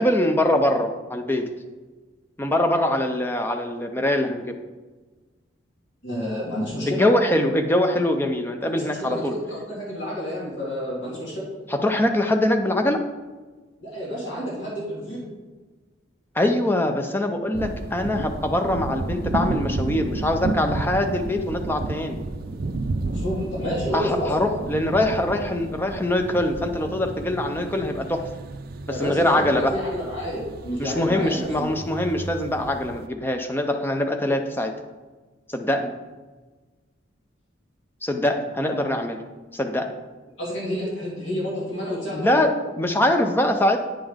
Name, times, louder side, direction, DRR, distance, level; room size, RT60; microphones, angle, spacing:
voice 1, 0.0-1.4 2.4-4.5 6.9-9.3 11.7-13.0 16.4-22.2 23.9-28.2 28.9-29.7 30.8-34.7 35.5-35.9 38.0-39.2 39.5-40.0 42.1-43.8, left 1 dB, 10° left, 5 dB, 0.5 m, -23 dB
voice 2, 6.0-7.1 8.6-11.5 13.8-15.2 23.1-24.5 28.9-31.7 40.4-42.4, equal, 70° left, -5 dB, 2.1 m, -30 dB
sound 1, 17.5-33.1, right 2 dB, 50° right, 0.4 m, -32 dB
8.9 x 5.4 x 3.5 m, 1.3 s
head